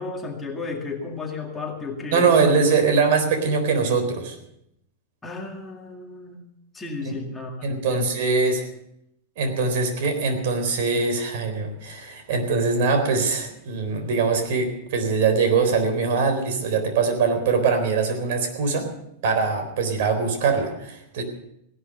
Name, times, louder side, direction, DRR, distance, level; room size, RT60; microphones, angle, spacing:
voice 1, 0.0-2.6 5.2-6.4 6.7-8.1, left 4 dB, 10° left, 0 dB, 2.1 m, -33 dB
voice 2, 2.1-4.4 7.1-7.2 7.6-8.7 9.4-18.9 19.2-21.2, right 4 dB, 60° right, 7 dB, 3.9 m, -22 dB
17.0 x 11.5 x 6.7 m, 0.76 s
supercardioid pair, 165°, 0 cm